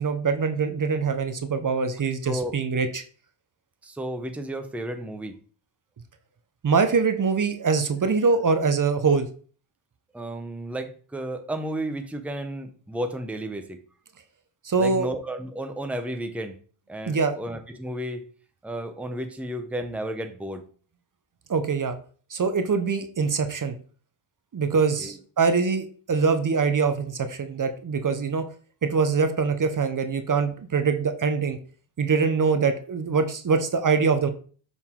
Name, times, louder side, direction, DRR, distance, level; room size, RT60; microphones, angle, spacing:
voice 1, 0.0-3.0 6.6-9.3 14.6-15.1 17.1-17.3 21.5-22.0 22.3-23.7 24.5-28.5 28.8-31.6 32.0-34.3, right 5 dB, 40° right, 8 dB, 0.9 m, -23 dB
voice 2, 3.8-5.4 10.1-13.8 14.8-16.5 16.9-18.3 18.6-20.6 24.7-25.1, right 1 dB, 5° right, 6 dB, 0.9 m, -33 dB
7.0 x 4.1 x 3.7 m, 0.42 s
cardioid pair, 70°, 49 cm